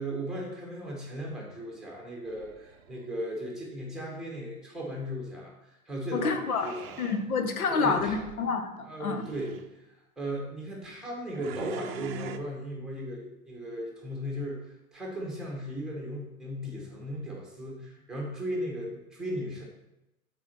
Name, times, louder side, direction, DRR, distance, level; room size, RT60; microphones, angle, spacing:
voice 1, 0.0-7.0 7.7-8.2 8.8-9.9 10.2-19.6, equal, ahead, -2 dB, 1.4 m, -37 dB
sound 1, 2.2-3.1 6.5-7.3 7.9-8.4 9.0-9.7 11.3-12.4, right 9 dB, 45° right, 0.6 m, -43 dB
voice 2, 6.1-6.7 7.0-9.2, left 4 dB, 90° left, 7 dB, 1.1 m, -28 dB
5.9 x 4.4 x 5.9 m, 0.94 s
hypercardioid pair, 140°, 43 cm